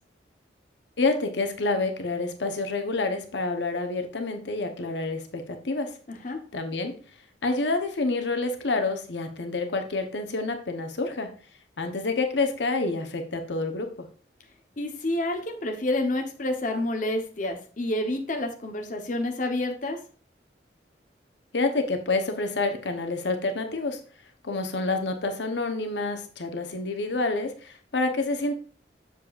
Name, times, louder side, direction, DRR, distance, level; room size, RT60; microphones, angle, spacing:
voice 1, 1.0-5.9 6.5-6.9 7.4-11.3 11.8-14.1 21.5-24.0 24.4-28.5, left 3 dB, 75° left, 6 dB, 0.9 m, -28 dB
voice 2, 6.1-6.4 14.8-20.0, left 1 dB, 45° left, 3 dB, 0.9 m, -29 dB
7.4 x 7.0 x 2.4 m, 0.40 s
head